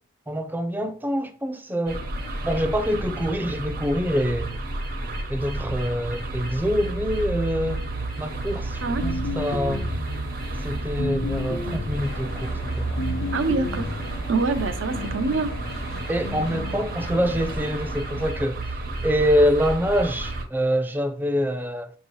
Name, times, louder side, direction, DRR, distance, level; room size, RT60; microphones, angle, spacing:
voice 1, 0.3-2.1 2.4-4.6 5.3-7.9 8.2-9.9 10.6-13.1 16.1-21.9, equal, 10° right, 0.4 m, -25 dB
sound 1, 1.9-20.4, right 2 dB, 55° right, 0.8 m, -31 dB
sound 2, 9.0-10.1 11.0-12.1 13.0-14.1 15.0-15.5 16.3-16.8, left 3 dB, 85° left, 0.4 m, -32 dB
Traffic noise roadway noise, 11.9-18.3, left 2 dB, 60° left, 0.8 m, -40 dB
voice 2, 13.3-14.0 14.3-15.5, right 4 dB, 80° right, 0.6 m, -25 dB
5.3 x 2.8 x 3.1 m
head